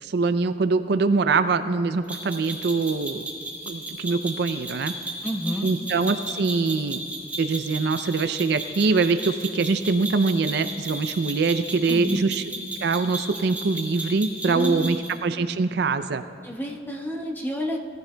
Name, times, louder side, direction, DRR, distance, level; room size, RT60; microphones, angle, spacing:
voice 1, 0.0-3.2 3.6-4.9 5.6-7.0 7.4-12.4 12.8-16.2, right 4 dB, 65° right, 11 dB, 0.5 m, -23 dB
sound 1, 2.1-15.1, right 1 dB, 10° right, 2.2 m, -35 dB
voice 2, 5.2-5.7 11.9-12.2 14.5-15.0 16.4-17.8, equal, 10° left, 0 dB, 1.1 m, -29 dB
19.0 x 14.0 x 2.3 m, 2.3 s
head